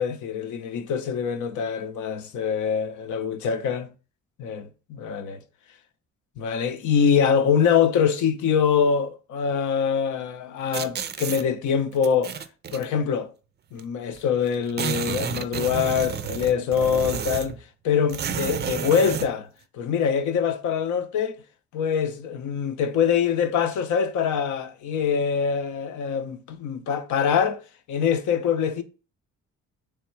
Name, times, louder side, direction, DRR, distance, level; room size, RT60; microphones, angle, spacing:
voice 1, 0.0-3.9 4.4-5.4 6.4-12.4 12.7-13.3 13.7-17.6 17.8-19.5 19.7-21.4 21.7-27.6 27.9-28.8, left 7 dB, 75° left, 0.7 m, -24 dB
sound 1, 10.7-11.4 12.0-12.8 13.8-13.9 14.1-14.2 14.5-17.6 18.1-19.3, right 8 dB, 35° right, 0.4 m, -30 dB
3.5 x 3.3 x 4.6 m
cardioid pair, 90°, 30 cm